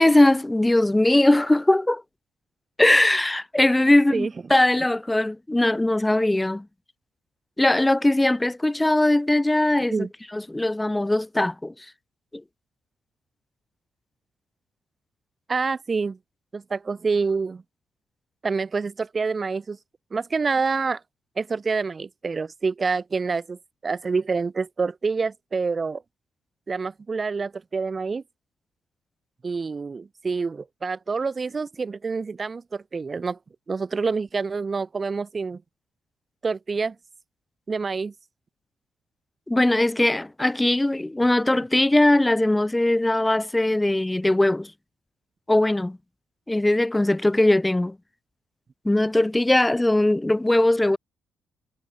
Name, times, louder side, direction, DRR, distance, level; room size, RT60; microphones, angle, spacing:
voice 1, 0.0-2.0 2.8-6.7 7.6-10.1 10.3-11.7 12.3-12.4 39.5-44.7 45.5-46.0 46.5-48.0 48.8-51.0, left 1 dB, 10° left, 0.3 m, -20 dB
voice 2, 15.5-16.2 16.5-17.6 18.4-19.8 20.1-21.0 21.4-26.0 26.7-28.2 29.4-33.4 33.7-35.6 36.4-37.0 37.7-38.1, right 4 dB, 35° right, 0.7 m, -27 dB
cardioid pair, 90°, 0 cm